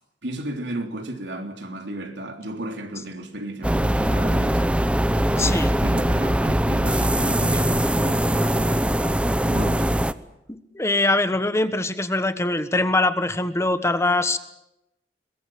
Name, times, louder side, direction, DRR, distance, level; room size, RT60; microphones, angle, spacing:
voice 1, 0.2-4.8 5.3-10.0, right 1 dB, 80° right, 3.4 m, -34 dB
sound 1, 3.6-10.1, right 1 dB, 5° right, 0.8 m, -21 dB
voice 2, 5.4-5.7 10.5-14.4, left 2 dB, 15° left, 1.3 m, -22 dB
22.0 x 22.0 x 7.7 m
head